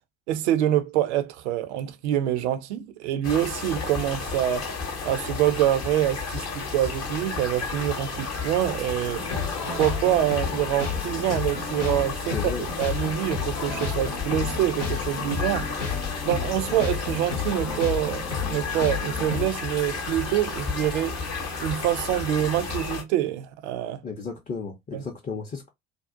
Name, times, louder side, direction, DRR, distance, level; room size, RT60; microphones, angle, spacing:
voice 1, 0.3-4.7 5.0-9.3 9.8-15.7 16.2-21.2 21.6-24.0 24.9-25.0, right 12 dB, 70° right, 0.5 m, -26 dB
sound 1, 3.2-23.0, left 4 dB, 45° left, 0.9 m, -32 dB
sound 2, 9.1-19.5, left 5 dB, 85° left, 0.8 m, -32 dB
voice 2, 12.3-12.7 24.0-25.7, left 5 dB, 20° left, 0.5 m, -34 dB
2.5 x 2.0 x 2.5 m
figure-of-eight pair, 55°, 35 cm